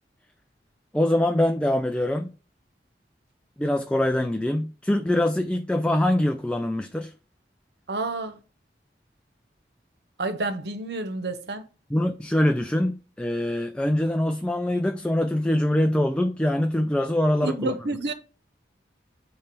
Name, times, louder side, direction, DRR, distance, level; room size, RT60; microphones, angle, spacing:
voice 1, 0.9-2.3 3.6-7.1 11.9-17.7, left 1 dB, 5° left, 0.4 m, -24 dB
voice 2, 7.9-8.4 10.2-11.6 17.4-18.1, right 2 dB, 70° right, 1.0 m, -29 dB
8.8 x 3.3 x 6.0 m
head